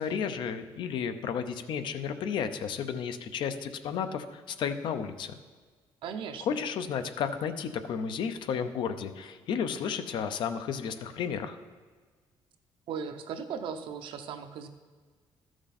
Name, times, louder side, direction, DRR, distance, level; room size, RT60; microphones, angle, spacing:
voice 1, 0.0-5.3 6.4-11.6, left 7 dB, 60° left, 9 dB, 0.6 m, -32 dB
voice 2, 6.0-6.6 12.9-14.7, right 6 dB, 65° right, 7 dB, 0.7 m, -37 dB
13.5 x 6.2 x 4.1 m, 1.4 s
cardioid pair, 175°, 9 cm